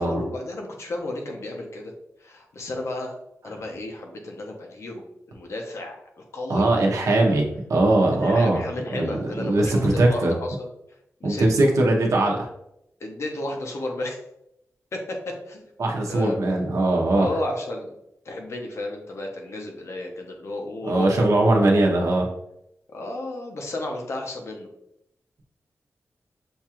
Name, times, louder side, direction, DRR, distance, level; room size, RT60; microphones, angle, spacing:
voice 1, 0.0-1.9 2.2-3.1 3.4-5.0 5.3-6.6 7.1-7.4 8.1-10.7 11.2-11.7 13.0-14.2 14.9-15.6 16.1-16.4 17.1-17.9 18.2-21.8 22.9-24.7, left 1 dB, 65° left, 2 dB, 0.8 m, -32 dB
voice 2, 6.5-8.6 8.9-10.3 11.2-12.5 15.8-17.3 20.8-22.3, right 2 dB, 80° right, 0 dB, 0.8 m, -20 dB
6.5 x 2.4 x 2.9 m, 0.80 s
wide cardioid pair, 120°, 5 cm